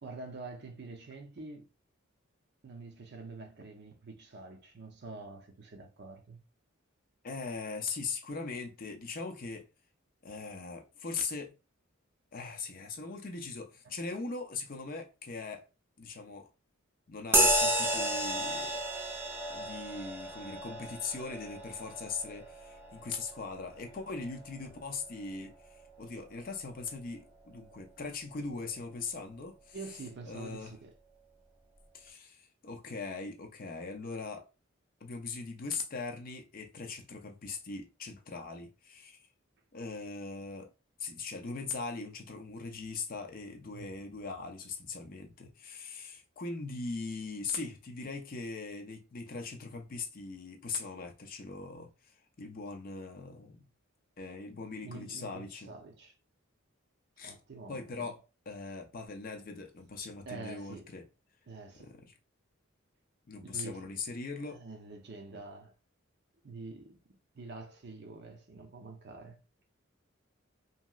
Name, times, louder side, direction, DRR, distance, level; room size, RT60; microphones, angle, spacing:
voice 1, 0.0-1.6 2.6-6.4 29.7-30.9 43.7-43.9 54.8-56.1 57.2-58.1 60.3-60.9 61.5-61.9 63.4-64.0 64.4-65.7 66.4-67.0 67.3-69.4, right 3 dB, 55° right, 0.6 m, -46 dB
voice 2, 7.2-9.6 10.2-11.5 12.3-15.7 16.0-16.5 17.1-18.8 19.5-29.8 30.3-30.7 31.9-34.4 35.0-39.2 39.7-40.7 41.0-52.1 52.4-53.7 54.2-55.7 57.2-57.4 57.7-58.2 58.5-61.1 61.7-62.1 63.3-64.6, left 4 dB, 45° left, 0.5 m, -40 dB
sound 1, 17.3-25.2, right 1 dB, 10° right, 0.4 m, -32 dB
3.0 x 2.7 x 2.3 m
head